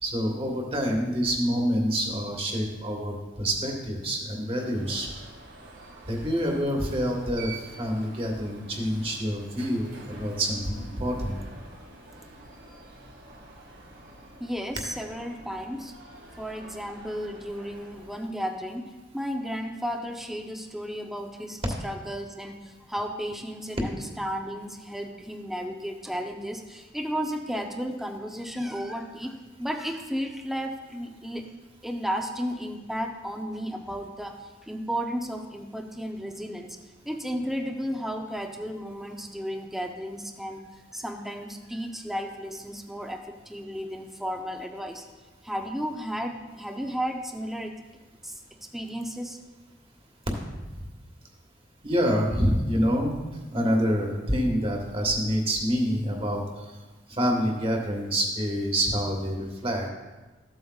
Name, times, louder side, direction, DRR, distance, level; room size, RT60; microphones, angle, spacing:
voice 1, 0.0-5.1 6.1-7.5 7.8-11.3 50.7-50.8 51.8-53.1 53.5-56.4 57.1-59.9, equal, 30° right, 1 dB, 1.5 m, -27 dB
Alarm, 4.4-18.4, right 2 dB, 80° right, 1.8 m, -47 dB
voice 2, 14.4-15.9 16.4-18.9 19.1-29.3 29.6-31.5 31.8-34.4 34.7-36.8 37.1-40.6 40.9-45.0 45.4-47.8 48.2-48.3 48.7-49.4, equal, ahead, 4 dB, 0.6 m, -33 dB
14.0 x 7.9 x 2.4 m, 1.2 s
head